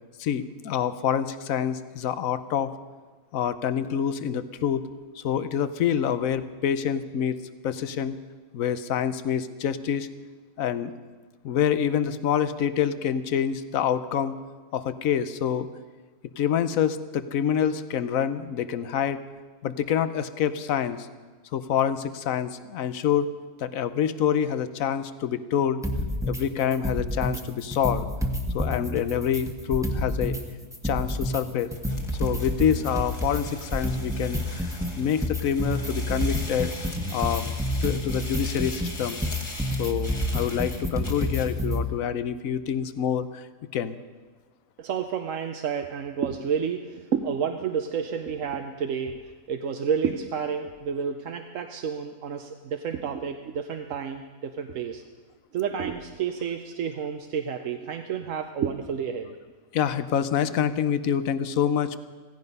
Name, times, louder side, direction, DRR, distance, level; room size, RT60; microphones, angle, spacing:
voice 1, 0.2-2.7 3.3-4.8 5.2-7.4 7.6-8.1 8.5-10.1 10.6-10.9 11.4-14.3 14.7-15.7 16.4-19.2 19.6-21.1 21.5-23.3 23.6-25.8 26.2-28.1 28.5-30.4 30.8-31.7 32.2-34.7 35.0-36.7 37.1-37.5 37.8-39.2 39.8-43.4 43.7-44.0 59.7-62.0, left 8 dB, 75° left, 13 dB, 1.2 m, -26 dB
sound 1, 25.8-26.4 26.7-27.4 27.7-30.4 30.7-41.8, left 1 dB, ahead, 1.2 m, -29 dB
sound 2, 31.7-41.6, left 1 dB, 20° left, 1.6 m, -41 dB
voice 2, 44.8-55.0 55.5-59.3, right 7 dB, 65° right, 5 dB, 1.1 m, -30 dB
16.5 x 16.0 x 5.4 m, 1.4 s
omnidirectional pair, 1.5 m